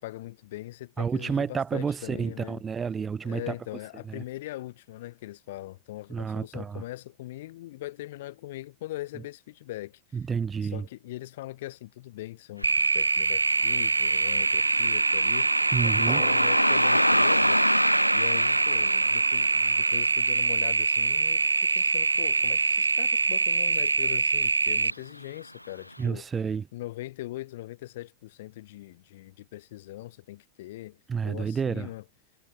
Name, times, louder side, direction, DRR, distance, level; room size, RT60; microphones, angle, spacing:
voice 1, 0.0-2.6 3.2-10.0 10.6-17.6 18.1-21.4 21.7-26.2 26.7-32.0, left 16 dB, 55° left, 2.4 m, -41 dB
voice 2, 1.0-3.5 4.1-4.2 6.1-6.8 10.1-10.8 15.7-16.2 26.0-26.7 31.1-31.9, right 6 dB, 20° right, 0.4 m, -30 dB
Car passing by, 12.6-23.4 23.7-23.8 24.8-24.9 25.4-25.5 26.0-26.1, left 1 dB, 85° left, 0.5 m, -29 dB
sound 1, 12.6-24.9, right 4 dB, 80° right, 0.6 m, -24 dB
Drum, 16.1-18.8, right 16 dB, 35° right, 1.5 m, -43 dB
figure-of-eight pair, 90°, 0 cm